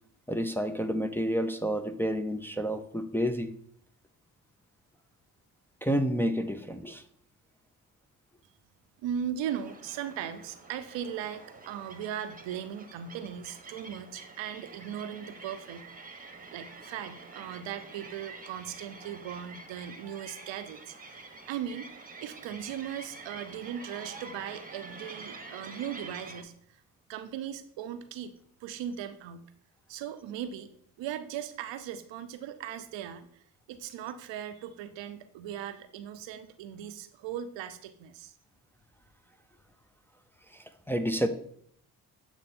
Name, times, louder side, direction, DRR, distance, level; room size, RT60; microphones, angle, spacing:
voice 1, 0.3-3.5 5.8-7.0 40.9-41.3, equal, 5° left, 6 dB, 0.5 m, -29 dB
voice 2, 9.0-15.9 16.5-21.9 22.2-26.5 27.1-28.3 28.6-29.5 29.9-30.7 31.0-38.3, right 9 dB, 70° right, 10 dB, 0.7 m, -38 dB
sound 1, 9.4-26.4, right 3 dB, 20° right, 1.0 m, -47 dB
7.8 x 2.9 x 4.3 m, 0.65 s
hypercardioid pair, 50°, 46 cm